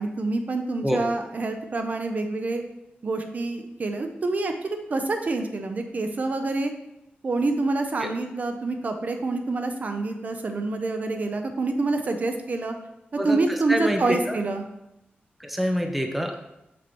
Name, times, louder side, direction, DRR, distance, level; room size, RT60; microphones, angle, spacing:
voice 1, 0.0-2.6 3.0-6.7 7.2-12.7 13.2-14.6, right 3 dB, 45° right, 6 dB, 0.6 m, -27 dB
voice 2, 13.2-14.4 15.4-16.4, equal, 5° right, 3 dB, 0.6 m, -26 dB
6.6 x 6.1 x 3.0 m, 0.87 s
wide cardioid pair, 155°, 4 cm